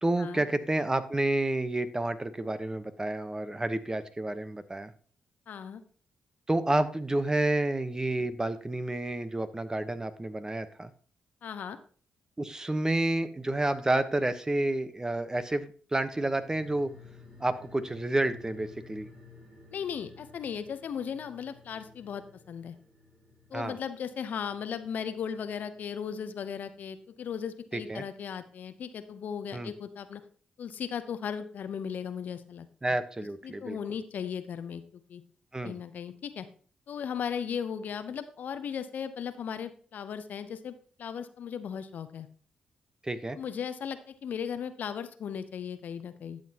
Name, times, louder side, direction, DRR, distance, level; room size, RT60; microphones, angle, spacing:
voice 1, 0.0-4.9 6.5-10.9 12.4-16.9 17.4-19.1 23.5-23.7 27.7-28.0 29.5-29.7 32.8-33.8 35.5-35.8 43.0-43.4, right 2 dB, 20° right, 11 dB, 1.0 m, -30 dB
voice 2, 5.5-5.8 11.4-11.8 19.7-22.7 23.5-30.2 30.6-32.7 33.4-35.2 35.6-36.5 36.9-42.3 43.4-46.4, left 7 dB, 65° left, 11 dB, 0.8 m, -37 dB
sound 1, 16.1-27.0 27.3-27.4, left 3 dB, 45° right, 5.4 m, -54 dB
12.0 x 7.6 x 2.9 m, 0.42 s
hypercardioid pair, 45°, 3 cm